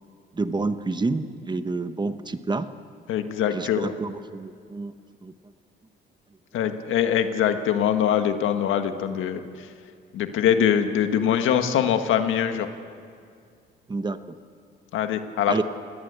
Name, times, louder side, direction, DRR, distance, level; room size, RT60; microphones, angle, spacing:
voice 1, 0.3-2.7 3.5-4.9 5.2-5.3 13.9-14.4 15.5-15.6, right 3 dB, 20° right, 10 dB, 1.1 m, -28 dB
voice 2, 3.1-3.9 6.5-9.4 10.1-12.7 14.9-15.6, left 9 dB, 85° left, 7 dB, 1.6 m, -23 dB
27.0 x 18.5 x 8.2 m, 2.2 s
cardioid pair, 90°, 20 cm